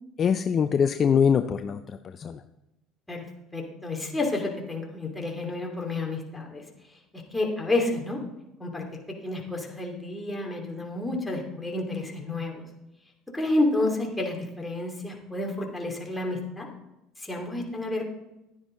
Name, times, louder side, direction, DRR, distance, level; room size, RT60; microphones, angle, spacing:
voice 1, 0.2-2.4, left 7 dB, 40° left, 9 dB, 0.5 m, -23 dB
voice 2, 3.5-6.6 7.1-8.2 8.6-12.7 13.3-16.7 17.2-18.0, left 2 dB, 5° left, -1 dB, 2.7 m, -30 dB
11.0 x 9.8 x 3.8 m, 0.93 s
supercardioid pair, 100°, 0 cm